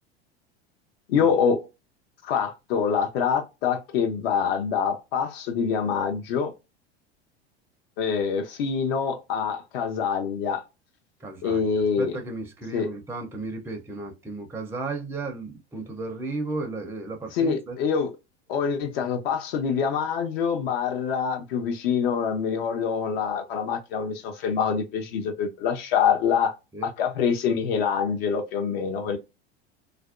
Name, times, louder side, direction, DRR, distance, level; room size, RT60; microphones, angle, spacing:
voice 1, 1.1-1.7 2.2-6.5 8.0-10.6 11.4-12.2 12.7-12.9 17.3-18.1 18.5-26.5 26.8-29.2, left 6 dB, 60° left, 0.8 m, -25 dB
voice 2, 11.2-11.6 12.0-17.8 26.7-26.9, right 3 dB, 5° right, 0.5 m, -34 dB
2.5 x 2.1 x 2.4 m
hypercardioid pair, 90°, 33 cm